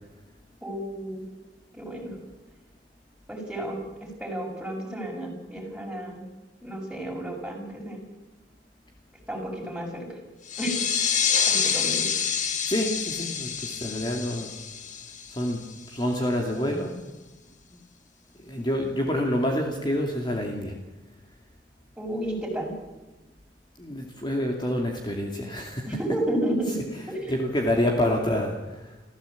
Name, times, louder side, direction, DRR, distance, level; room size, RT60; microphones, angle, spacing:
voice 1, 0.6-1.2 1.7-2.1 3.3-6.2 6.6-8.0 9.3-10.2 10.6-10.8 11.5-12.1 22.0-22.7 25.9-26.8 27.1-27.4, right 1 dB, 5° right, 0 dB, 6.5 m, -32 dB
sound 1, 10.5-15.8, left 7 dB, 45° left, 2.0 m, -27 dB
voice 2, 12.6-14.5 15.3-15.6 15.9-16.9 17.7-17.8 18.4-20.7 23.8-25.9 26.9-29.0, left 1 dB, 25° left, 1 dB, 2.5 m, -27 dB
27.5 x 15.5 x 8.4 m, 1.1 s
head